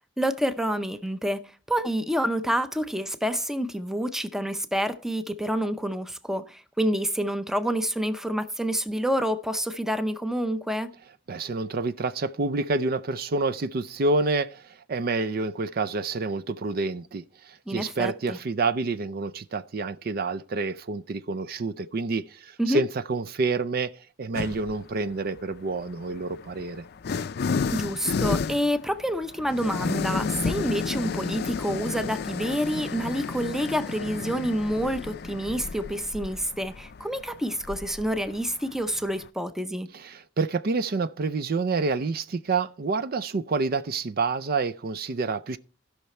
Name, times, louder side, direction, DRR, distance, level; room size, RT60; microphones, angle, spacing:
voice 1, 0.2-1.4 1.7-10.9 17.7-18.4 22.6-22.8 27.7-39.9, equal, ahead, 0.6 m, -28 dB
voice 2, 11.3-26.8 39.9-45.6, right 3 dB, 55° right, 0.5 m, -28 dB
sound 1, 24.3-24.8 25.8-39.3, left 4 dB, 60° left, 0.4 m, -32 dB
15.5 x 5.8 x 4.2 m
head